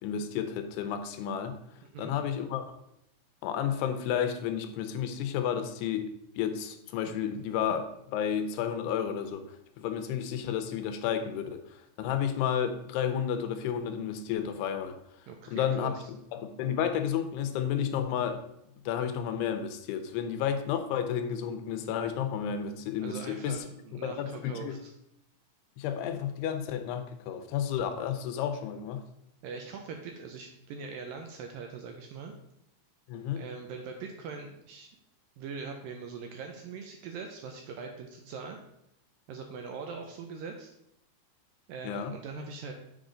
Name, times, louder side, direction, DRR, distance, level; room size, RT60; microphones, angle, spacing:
voice 1, 0.0-1.6 2.0-2.7 3.4-15.0 15.5-15.9 16.3-18.4 18.9-23.6 23.9-24.8 25.8-29.0 33.1-33.4 41.8-42.1, left 8 dB, 90° left, 8 dB, 2.7 m, -31 dB
voice 2, 15.3-16.1 23.0-24.9 29.4-32.3 33.4-34.9 35.4-38.6 39.3-40.7 41.7-42.7, right 5 dB, 85° right, 3 dB, 2.1 m, -42 dB
7.3 x 5.0 x 3.8 m, 0.77 s
omnidirectional pair, 4.6 m